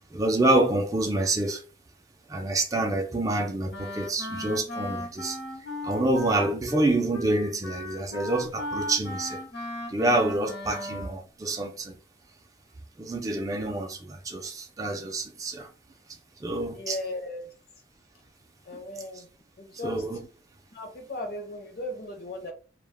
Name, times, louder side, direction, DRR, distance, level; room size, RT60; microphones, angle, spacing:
voice 1, 0.1-1.6 2.3-9.4 9.9-12.0 13.0-15.7 16.4-17.0 19.8-20.2, right 2 dB, 20° right, 0.3 m, -27 dB
Wind instrument woodwind instrument, 3.7-11.2, left 1 dB, 75° left, 1.0 m, -37 dB
voice 2, 16.7-17.5 18.6-19.3 19.6-20.1 20.7-22.5, left 1 dB, 55° left, 0.6 m, -36 dB
2.2 x 2.0 x 3.3 m
head